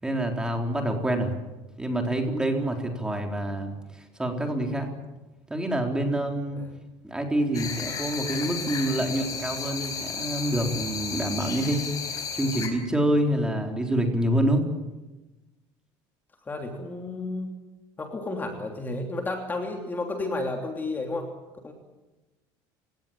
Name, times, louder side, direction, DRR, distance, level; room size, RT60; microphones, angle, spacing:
voice 1, 0.0-1.3 1.8-4.9 5.5-6.6 7.0-14.6, right 1 dB, 5° right, 3 dB, 3.9 m, -27 dB
sound 1, 7.5-12.7, left 6 dB, 35° left, 5.0 m, -33 dB
voice 2, 16.5-17.5 18.0-21.3 21.6-21.7, left 2 dB, 20° left, 3 dB, 3.1 m, -32 dB
29.5 x 18.0 x 9.0 m, 1.1 s
cardioid pair, 145°, 10 cm